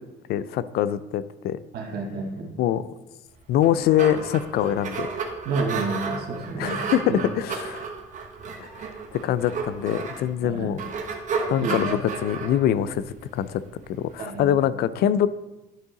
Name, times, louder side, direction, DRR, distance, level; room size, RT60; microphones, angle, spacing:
voice 1, 0.3-1.6 2.6-2.8 3.5-5.1 6.6-7.9 8.6-8.7 9.1-10.8 11.5-13.0 13.3-13.6 14.0-15.3, left 11 dB, 70° left, 15 dB, 0.5 m, -24 dB
voice 2, 1.7-2.5 5.4-6.8 7.1-7.2 10.4-10.7 11.6-11.8 14.2-14.5, right 4 dB, 70° right, 0 dB, 1.5 m, -29 dB
sound 1, 3.4-14.1, right 5 dB, 50° right, 1.2 m, -33 dB
11.0 x 5.4 x 3.8 m, 1.0 s
cardioid pair, 110°, 17 cm